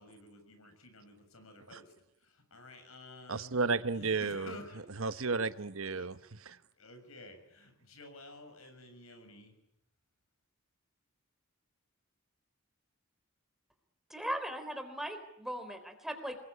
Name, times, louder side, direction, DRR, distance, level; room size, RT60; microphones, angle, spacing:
voice 1, 0.0-1.9 2.2-3.6 3.9-4.9 5.9-6.1 6.8-9.6, left 2 dB, 75° left, 7 dB, 7.0 m, -52 dB
voice 2, 3.3-4.5 5.0-6.6, right 4 dB, 70° right, 12 dB, 1.1 m, -33 dB
voice 3, 14.1-16.4, equal, ahead, 7 dB, 3.7 m, -38 dB
27.0 x 21.5 x 9.8 m, 0.80 s
head